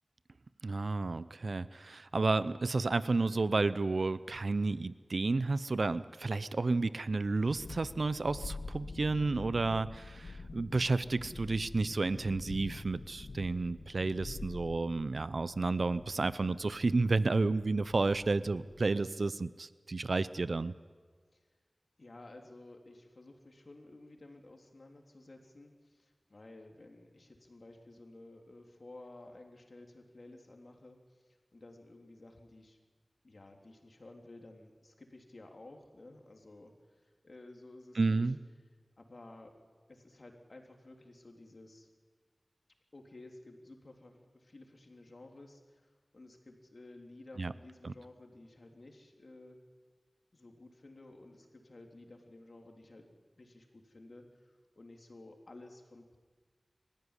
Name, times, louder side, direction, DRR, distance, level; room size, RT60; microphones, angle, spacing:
voice 1, 0.6-20.7 38.0-38.4 47.4-47.5 47.8-47.9, right 3 dB, 75° right, 16 dB, 0.6 m, -31 dB
Thunderstorm, 7.2-18.8, left 3 dB, 85° left, 0.9 m, -47 dB
voice 2, 22.0-31.0 31.3-32.8 33.2-38.3 39.0-39.5 39.9-41.9 42.9-49.6 50.3-53.1 53.3-56.2, left 2 dB, 60° left, 3 dB, 3.5 m, -54 dB
25.0 x 15.0 x 10.0 m, 1.5 s
wide cardioid pair, 60°, 0 cm